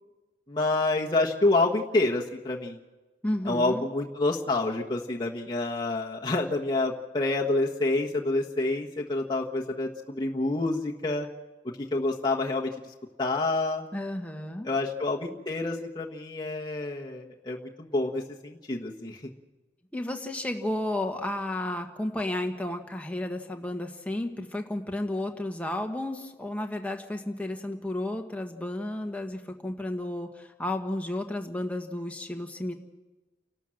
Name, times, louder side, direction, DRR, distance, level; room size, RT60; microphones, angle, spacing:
voice 1, 0.5-2.8 3.4-11.3 11.6-12.7 13.2-13.9 14.6-19.2, left 2 dB, 25° left, -2 dB, 1.3 m, -28 dB
voice 2, 3.2-3.8 13.9-14.7 19.9-32.7, left 1 dB, 10° left, 3 dB, 1.5 m, -32 dB
29.5 x 12.5 x 7.7 m, 1.2 s
head